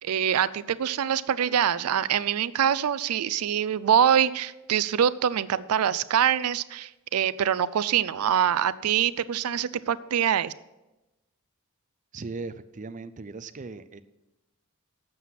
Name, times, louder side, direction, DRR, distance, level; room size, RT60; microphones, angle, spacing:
voice 1, 0.0-10.5, right 9 dB, 90° right, 17 dB, 0.4 m, -24 dB
voice 2, 12.1-14.0, right 3 dB, 35° right, 11 dB, 0.5 m, -38 dB
11.5 x 7.7 x 5.8 m, 1.0 s
head